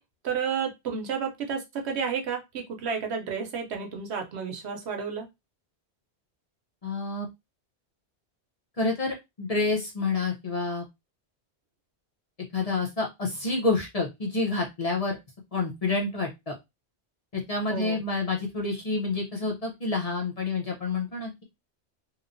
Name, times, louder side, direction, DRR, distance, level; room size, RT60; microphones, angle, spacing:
voice 1, 0.2-5.3 17.7-18.0, right 6 dB, 70° right, 4 dB, 0.9 m, -31 dB
voice 2, 6.8-7.3 8.8-10.8 12.5-15.2 15.5-16.6 17.3-21.4, left 3 dB, 40° left, -1 dB, 0.7 m, -28 dB
2.9 x 2.1 x 2.5 m, 0.21 s
omnidirectional pair, 1.1 m